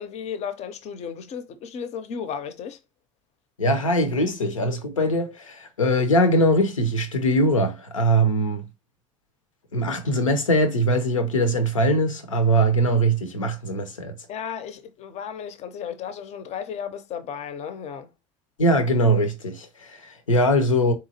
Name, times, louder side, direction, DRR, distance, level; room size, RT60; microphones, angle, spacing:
voice 1, 0.0-2.8 14.3-18.1, left 7 dB, 45° left, 0.6 m, -34 dB
voice 2, 3.6-8.7 9.7-14.1 18.6-20.9, right 1 dB, 85° left, 0.6 m, -21 dB
3.8 x 2.9 x 2.7 m
figure-of-eight pair, 65°, 16 cm